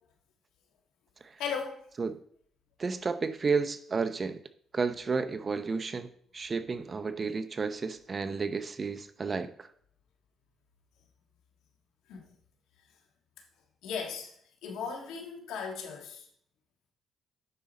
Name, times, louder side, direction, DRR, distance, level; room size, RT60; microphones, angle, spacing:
voice 1, 1.4-1.8 12.1-12.2 13.8-14.3 14.6-16.2, left 6 dB, 90° left, 2 dB, 1.6 m, -36 dB
voice 2, 2.8-4.4 4.7-6.1 6.3-9.7, right 4 dB, 35° right, 11 dB, 0.7 m, -32 dB
9.8 x 4.9 x 4.2 m, 0.62 s
cardioid pair, 90°, 0 cm